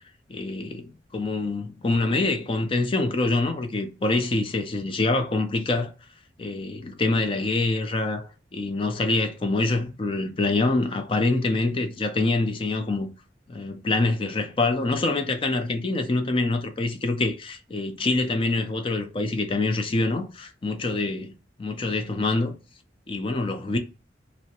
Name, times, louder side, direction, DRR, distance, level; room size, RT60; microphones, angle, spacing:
voice 1, 0.3-5.9 6.4-13.1 13.5-21.3 21.6-22.6 23.1-23.8, left 2 dB, 30° left, 0.4 m, -25 dB
2.5 x 2.1 x 2.7 m
head